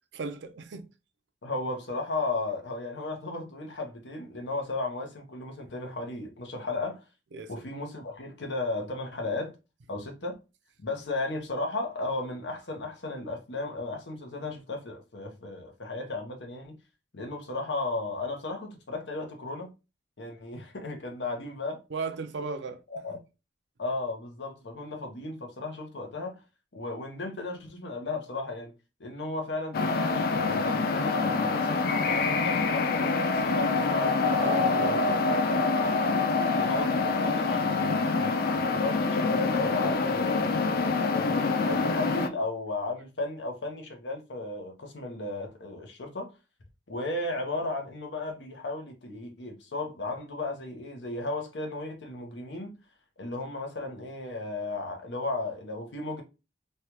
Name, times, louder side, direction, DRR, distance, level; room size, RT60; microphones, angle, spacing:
voice 1, 0.1-0.9 7.3-7.5 21.9-22.8 23.1-23.2 34.3-35.4 40.9-41.0, right 4 dB, 80° right, 0.5 m, -36 dB
voice 2, 1.4-7.0 7.5-9.5 9.9-10.4 10.8-16.8 17.1-19.7 20.2-21.8 22.9-23.2 23.8-26.4 26.7-28.7 29.0-35.0 36.5-40.6 41.1-46.3 46.9-52.7 53.2-56.2, left 2 dB, 75° left, 0.8 m, -35 dB
sound 1, 29.7-42.3, left 4 dB, 55° left, 0.3 m, -26 dB
3.2 x 2.3 x 2.9 m
head